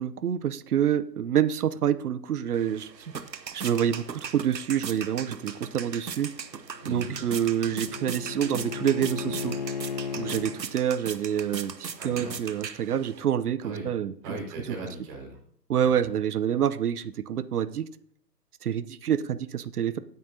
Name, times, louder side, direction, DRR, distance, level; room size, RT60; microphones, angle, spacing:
voice 1, 0.0-2.9 3.5-6.3 6.9-9.6 10.2-14.1 15.7-17.9 18.6-20.0, right 9 dB, 65° right, 15 dB, 0.7 m, -27 dB
sound 1, 2.5-13.3, right 6 dB, 85° right, 1.0 m, -39 dB
Bowed string instrument, 6.6-10.6, left 5 dB, 30° left, 0.4 m, -35 dB
voice 2, 6.8-7.1 12.0-12.4 13.6-13.9 14.2-15.4 15.8-16.1, right 2 dB, 30° right, 0 dB, 4.8 m, -37 dB
15.5 x 9.3 x 2.7 m, 0.64 s
figure-of-eight pair, 125°, 49 cm